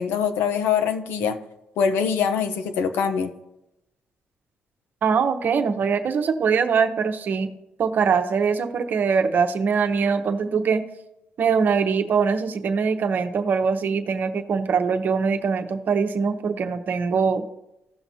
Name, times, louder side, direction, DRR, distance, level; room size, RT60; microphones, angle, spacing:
voice 1, 0.0-1.4 1.8-3.3, left 7 dB, 85° left, 8 dB, 0.8 m, -23 dB
voice 2, 5.0-7.5 7.8-10.8 11.4-17.5, right 5 dB, 60° right, 7 dB, 0.9 m, -22 dB
15.5 x 5.9 x 2.8 m, 0.90 s
cardioid pair, 75°, 4 cm